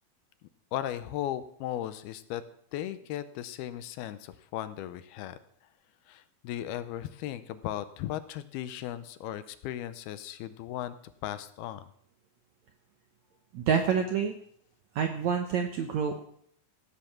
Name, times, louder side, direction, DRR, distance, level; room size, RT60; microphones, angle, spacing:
voice 1, 0.7-2.4 2.7-5.4 6.1-11.0 11.2-11.9, left 12 dB, 85° left, 12 dB, 2.7 m, -36 dB
voice 2, 13.5-14.3 14.9-16.2, right 7 dB, 75° right, 5 dB, 1.7 m, -27 dB
16.5 x 10.0 x 5.9 m, 0.67 s
omnidirectional pair, 4.6 m